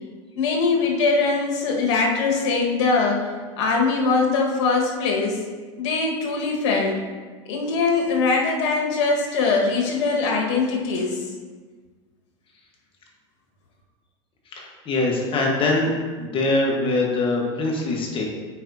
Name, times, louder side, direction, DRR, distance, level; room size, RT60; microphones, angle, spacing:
voice 1, 0.3-3.2 3.6-5.4 5.8-6.9 7.5-11.2, left 4 dB, 70° left, 0 dB, 1.5 m, -22 dB
voice 2, 14.5-15.9 16.2-18.2, left 2 dB, 35° left, 0 dB, 1.3 m, -23 dB
9.0 x 4.6 x 2.7 m, 1.4 s
hypercardioid pair, 105°, 15 cm